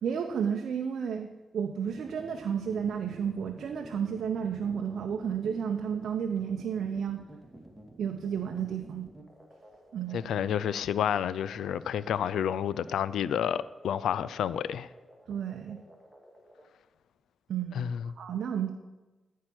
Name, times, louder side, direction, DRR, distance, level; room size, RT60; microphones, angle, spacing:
voice 1, 0.0-1.3 1.5-7.2 8.0-9.1 9.9-10.3 15.3-15.8 17.5-17.9 18.2-18.7, right 7 dB, 75° right, 0.7 m, -32 dB
sound 1, 1.8-16.7, right 1 dB, ahead, 2.2 m, -51 dB
voice 2, 10.1-14.9 17.7-18.1, left 9 dB, 85° left, 0.3 m, -30 dB
13.5 x 4.7 x 6.1 m
cardioid pair, 65°, 0 cm